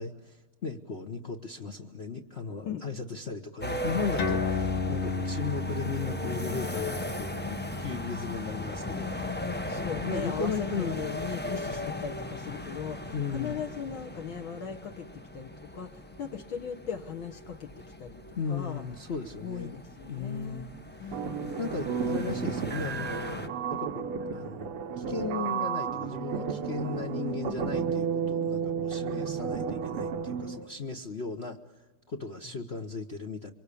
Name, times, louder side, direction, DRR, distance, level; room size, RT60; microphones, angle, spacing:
voice 1, 0.0-9.1 9.4-11.0 13.1-13.6 18.4-19.8 20.1-20.7 21.0-21.2 21.6-24.0 24.3-31.6 32.1-33.5, left 5 dB, 40° left, 2 dB, 1.0 m, -36 dB
sound 1, 3.6-23.5, left 2 dB, 10° left, 0.6 m, -38 dB
sound 2, 4.2-11.1, left 3 dB, 90° left, 3.0 m, -35 dB
voice 2, 9.7-18.2 18.5-18.8 19.4-20.7 21.0-21.6, left 7 dB, 65° left, 5 dB, 2.0 m, -38 dB
sound 3, 21.1-30.6, right 6 dB, 80° right, 2.1 m, -32 dB
27.5 x 24.5 x 8.5 m, 1.2 s
omnidirectional pair, 2.4 m